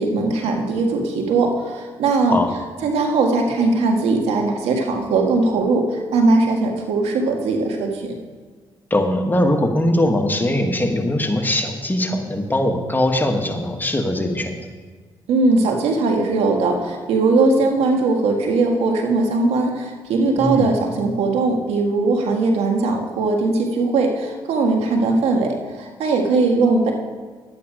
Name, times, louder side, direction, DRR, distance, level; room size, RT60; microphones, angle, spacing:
voice 1, 0.0-2.4 2.8-8.1 15.3-26.9, right 3 dB, 80° right, 2 dB, 1.7 m, -19 dB
voice 2, 8.9-14.7 20.4-20.7, left 1 dB, 20° left, 4 dB, 1.6 m, -21 dB
11.0 x 9.2 x 5.0 m, 1.5 s
supercardioid pair, 55°, 10 cm